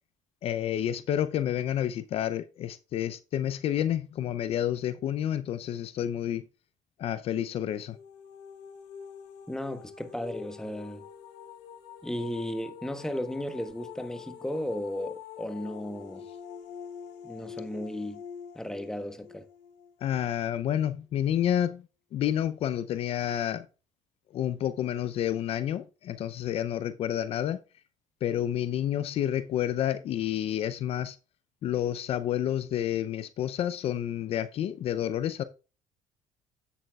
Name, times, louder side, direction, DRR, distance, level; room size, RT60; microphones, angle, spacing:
voice 1, 0.4-6.4 7.0-8.0 20.0-21.8 22.1-23.7 24.3-27.6 28.2-31.2 31.6-35.4, left 11 dB, 60° left, 0.5 m, -29 dB
sound 1, 7.7-20.6, left 8 dB, 85° left, 1.5 m, -46 dB
voice 2, 9.5-11.0 12.0-16.2 17.2-18.2 18.5-19.4, left 1 dB, 5° left, 1.1 m, -35 dB
8.9 x 8.3 x 2.3 m
supercardioid pair, 85°, 12 cm